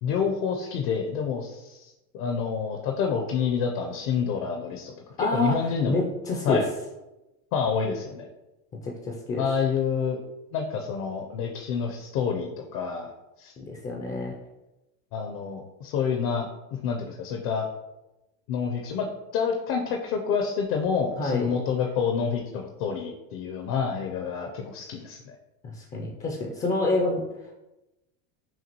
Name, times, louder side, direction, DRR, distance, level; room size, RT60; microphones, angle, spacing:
voice 1, 0.0-6.0 6.4-6.6 7.5-8.3 9.4-10.2 10.5-13.1 13.4-13.5 15.1-16.5 16.8-17.7 18.5-19.1 19.3-25.4, left 6 dB, 65° left, 3 dB, 0.7 m, -28 dB
voice 2, 5.2-6.7 8.8-9.5 13.6-14.4 21.2-21.5 25.6-27.5, left 2 dB, 20° left, 0 dB, 0.3 m, -28 dB
5.8 x 2.4 x 2.9 m, 0.99 s
supercardioid pair, 125°, 41 cm